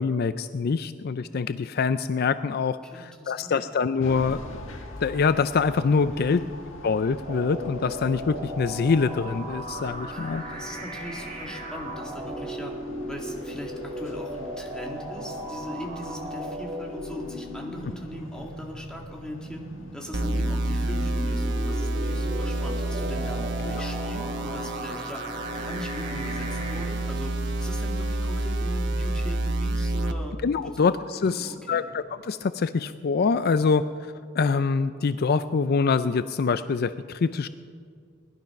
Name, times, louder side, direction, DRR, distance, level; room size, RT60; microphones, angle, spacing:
voice 1, 0.0-4.4 5.0-6.4 6.8-10.4 23.7-23.9 30.4-33.8 34.3-37.5, left 5 dB, 55° left, 13 dB, 0.4 m, -25 dB
voice 2, 2.8-3.6 6.1-6.5 10.1-12.8 13.1-19.6 19.9-30.4 30.6-30.8 31.2-31.8, equal, 5° left, 0 dB, 2.1 m, -39 dB
sound 1, 4.0-20.7, left 1 dB, 80° left, 1.5 m, -45 dB
sound 2, 7.3-26.9, equal, 45° right, 2.9 m, -37 dB
sound 3, 20.1-30.1, right 2 dB, 65° right, 0.9 m, -28 dB
20.0 x 12.0 x 5.9 m, 2.1 s
head